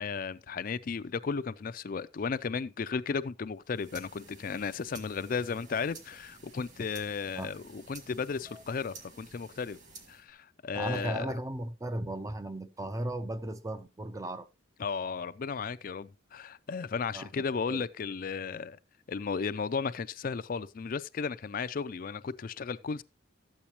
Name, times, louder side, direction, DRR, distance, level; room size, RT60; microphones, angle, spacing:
voice 1, 0.0-9.8 10.1-11.4 14.8-18.8 19.1-23.0, left 5 dB, 45° left, 0.4 m, -34 dB
sound 1, 3.6-10.3, right 4 dB, 40° right, 2.0 m, -53 dB
voice 2, 10.7-14.5 17.1-17.4 17.7-17.9, right 1 dB, 15° right, 0.5 m, -36 dB
12.5 x 8.5 x 2.9 m
head